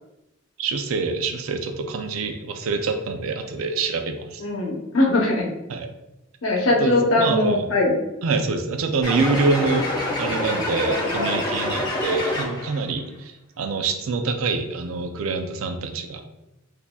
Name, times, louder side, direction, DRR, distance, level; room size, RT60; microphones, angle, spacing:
voice 1, 0.6-4.4 5.7-5.9 6.7-7.7 8.2-9.9 10.2-16.2, right 4 dB, 85° right, 6 dB, 0.4 m, -26 dB
voice 2, 4.4-5.5 6.4-7.9 10.9-11.4, left 2 dB, 75° left, -1 dB, 0.8 m, -21 dB
sound 1, 9.0-12.8, left 1 dB, 20° left, 0.8 m, -26 dB
4.1 x 2.5 x 2.3 m, 0.92 s
head